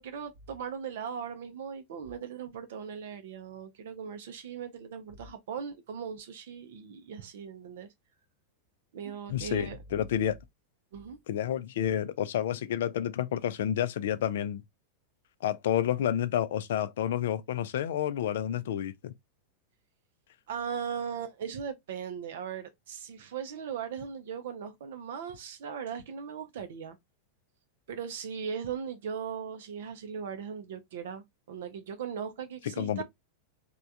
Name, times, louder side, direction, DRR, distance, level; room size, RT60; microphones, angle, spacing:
voice 1, 0.0-7.9 8.9-9.8 10.9-11.2 20.5-27.0 27.9-33.0, right 7 dB, 55° right, 0.4 m, -38 dB
voice 2, 9.3-10.4 11.3-14.6 15.4-19.1 32.8-33.0, left 10 dB, 55° left, 0.3 m, -30 dB
3.2 x 2.2 x 2.6 m
figure-of-eight pair, 90°, 0 cm